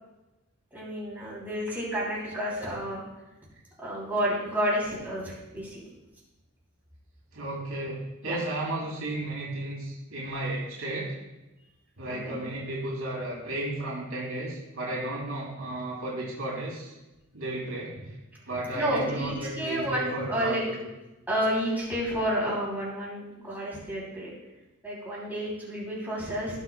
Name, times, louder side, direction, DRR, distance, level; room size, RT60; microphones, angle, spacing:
voice 1, 0.7-3.0 3.8-5.8 8.2-8.4 12.2-12.4 18.7-20.6 21.3-24.3 24.8-26.6, equal, 10° right, -6 dB, 3.0 m, -30 dB
voice 2, 7.3-11.1 12.0-16.9 17.3-18.2 18.4-20.8, right 1 dB, 85° right, -5 dB, 2.8 m, -33 dB
17.5 x 6.0 x 2.2 m, 1.0 s
head